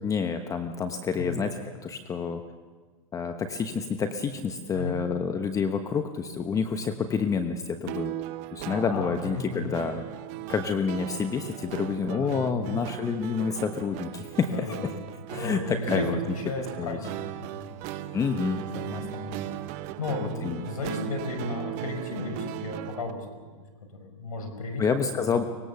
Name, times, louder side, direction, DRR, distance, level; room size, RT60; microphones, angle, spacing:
voice 1, 0.0-2.4 3.1-8.1 8.5-10.0 10.5-14.9 15.3-16.2 16.8-17.0 18.1-18.7 20.4-20.6 24.8-25.4, left 5 dB, 20° left, 7 dB, 1.1 m, -28 dB
sound 1, 7.9-23.1, right 14 dB, 40° right, 1.0 m, -38 dB
voice 2, 8.6-9.7 12.0-12.8 14.5-15.0 15.3-18.1 18.7-19.5 20.0-23.5 23.9-24.9 25.2-25.5, left 2 dB, 80° left, 5 dB, 5.6 m, -34 dB
24.0 x 20.0 x 7.0 m, 1.4 s
hypercardioid pair, 130°, 18 cm